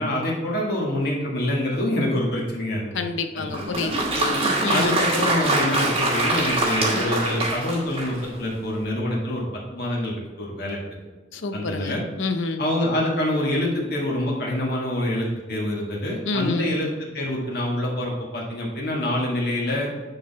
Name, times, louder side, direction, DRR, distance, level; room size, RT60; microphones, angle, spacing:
voice 1, 0.0-2.9 3.3-3.9 4.7-10.8 11.5-12.0 12.6-19.9, left 1 dB, 55° left, -3 dB, 1.8 m, -26 dB
voice 2, 2.9-5.0 11.3-12.6 16.2-16.7, left 3 dB, 85° left, 7 dB, 0.7 m, -29 dB
Applause, 3.5-8.4, right 2 dB, 30° right, 1.3 m, -24 dB
9.1 x 4.0 x 4.2 m, 1.2 s
head